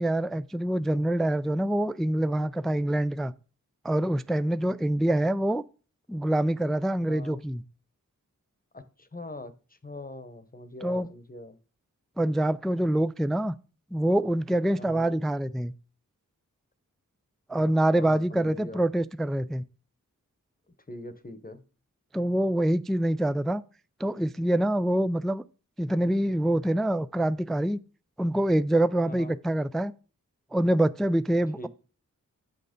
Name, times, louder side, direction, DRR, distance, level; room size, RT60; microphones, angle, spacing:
voice 1, 0.0-3.3 3.8-5.6 6.1-7.6 10.8-11.1 12.2-13.5 13.9-15.7 17.5-19.6 22.1-23.6 24.0-25.4 25.8-27.8 28.2-29.9 30.5-31.7, right 1 dB, ahead, 0.3 m, -25 dB
voice 2, 7.1-7.4 8.7-9.5 9.8-11.6 14.7-15.2 17.6-17.7 17.9-18.9 20.9-21.6 29.0-29.4 31.6-31.7, left 2 dB, 25° left, 1.0 m, -42 dB
6.5 x 5.4 x 5.2 m
cardioid pair, 45°, 33 cm